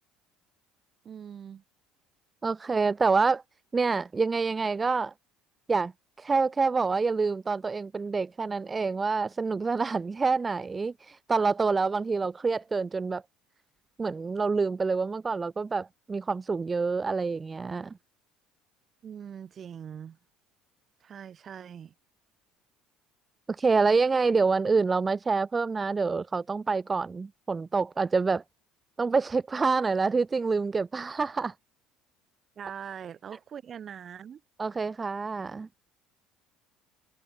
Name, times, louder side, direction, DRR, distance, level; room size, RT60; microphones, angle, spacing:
voice 1, 1.0-1.6 19.0-20.2 21.0-21.9 32.6-34.4, right 8 dB, 45° right, 2.9 m, -42 dB
voice 2, 2.4-3.4 3.7-5.1 5.7-5.9 6.2-13.2 14.0-18.0 23.5-28.4 29.0-31.5 34.6-35.7, right 4 dB, 25° right, 0.5 m, -27 dB
hypercardioid pair, 75°, 0 cm